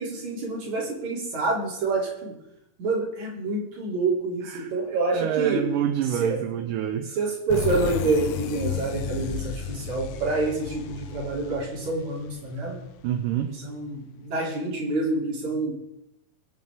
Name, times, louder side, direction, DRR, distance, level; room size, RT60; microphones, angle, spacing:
voice 1, 0.0-2.3 2.8-5.7 6.2-6.4 7.1-12.8 13.5-15.7, right 3 dB, 55° right, -3 dB, 4.4 m, -27 dB
voice 2, 5.1-7.1 13.0-13.6, right 10 dB, 75° right, 5 dB, 2.5 m, -26 dB
sound 1, 7.5-13.0, left 10 dB, 75° left, 1.8 m, -33 dB
23.5 x 7.8 x 3.6 m, 0.88 s
omnidirectional pair, 3.9 m